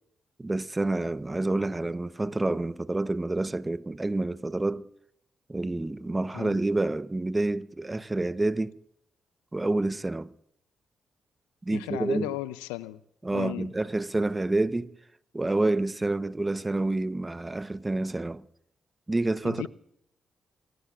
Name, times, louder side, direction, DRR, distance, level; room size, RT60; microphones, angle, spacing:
voice 1, 0.4-4.9 5.5-8.8 9.5-10.3 11.6-12.3 13.2-14.9 15.3-18.4 19.1-19.7, right 2 dB, 25° right, 0.9 m, -28 dB
voice 2, 11.7-13.0 13.3-13.7 19.4-19.7, left 18 dB, 85° left, 0.5 m, -35 dB
27.5 x 18.5 x 2.5 m
hypercardioid pair, 40°, 0 cm